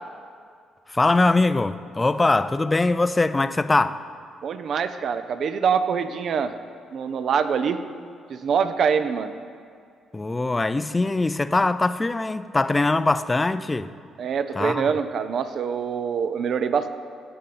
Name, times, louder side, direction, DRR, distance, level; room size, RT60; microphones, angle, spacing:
voice 1, 0.9-4.0 10.1-13.9 14.5-14.9, left 2 dB, 20° left, 0.4 m, -22 dB
voice 2, 4.4-6.5 6.9-7.8 8.3-9.3 14.2-16.9, right 6 dB, 60° right, 0.6 m, -24 dB
17.0 x 6.6 x 4.3 m
cardioid pair, 90°, 0 cm